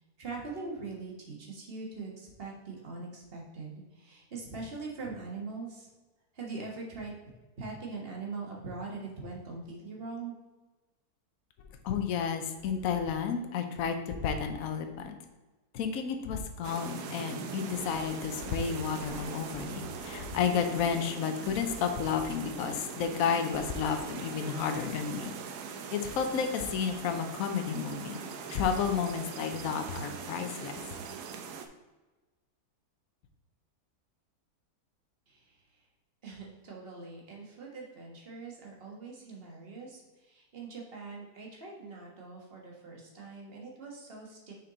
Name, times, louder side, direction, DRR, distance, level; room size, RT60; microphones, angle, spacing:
voice 1, 0.2-5.9 6.3-7.1 7.6-10.3 35.3-35.4 36.2-40.0 40.3-44.5, right 3 dB, 40° right, -2 dB, 1.5 m, -42 dB
voice 2, 11.8-15.1 15.7-25.3 25.9-28.2 28.5-30.7, left 6 dB, 65° left, 6 dB, 1.1 m, -31 dB
sound 1, 16.6-31.7, right 6 dB, 85° right, 1.2 m, -41 dB
6.5 x 4.5 x 3.9 m, 1.2 s
omnidirectional pair, 1.7 m